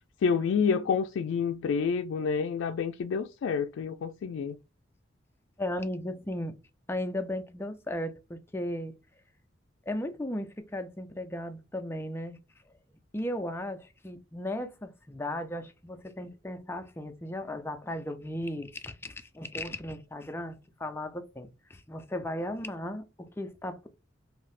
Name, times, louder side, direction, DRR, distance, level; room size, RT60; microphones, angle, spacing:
voice 1, 0.2-4.6, left 6 dB, 90° left, 0.3 m, -28 dB
voice 2, 5.6-6.6 6.9-8.9 9.9-12.4 13.1-23.9, left 1 dB, 10° left, 0.3 m, -36 dB
2.7 x 2.5 x 3.2 m
head